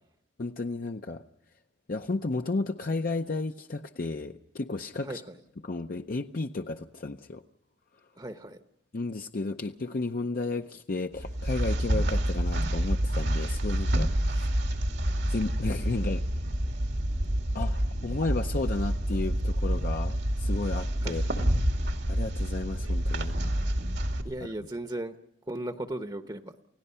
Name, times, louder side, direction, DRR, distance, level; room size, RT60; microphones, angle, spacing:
voice 1, 0.4-1.2 1.9-5.2 5.6-7.4 8.9-14.5 15.3-16.2 17.5-21.2 22.1-23.4, left 3 dB, 55° left, 5 dB, 0.7 m, -33 dB
voice 2, 5.0-5.4 8.2-8.6 21.0-21.4 24.2-25.2 25.5-26.5, right 1 dB, 25° right, 8 dB, 0.9 m, -37 dB
sound 1, 11.1-24.2, equal, 85° right, 2.4 m, -28 dB
29.0 x 17.0 x 5.6 m, 0.79 s
head